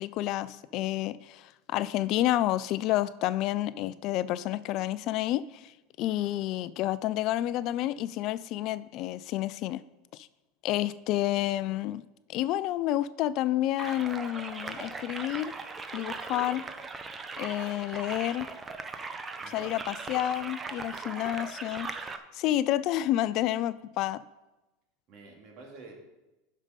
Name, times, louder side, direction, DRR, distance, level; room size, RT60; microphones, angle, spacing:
voice 1, 0.0-5.7 6.0-9.8 10.1-10.3 10.6-12.0 12.3-15.5 15.9-16.6 17.4-18.5 19.5-21.9 22.3-24.2, left 14 dB, 55° left, 16 dB, 0.4 m, -29 dB
sound 1, 13.8-22.2, right 4 dB, 20° right, 0.9 m, -39 dB
voice 2, 19.4-19.8 25.1-26.0, right 3 dB, 55° right, 1 dB, 2.8 m, -48 dB
11.5 x 5.3 x 5.3 m, 1.0 s
hypercardioid pair, 95°, 0 cm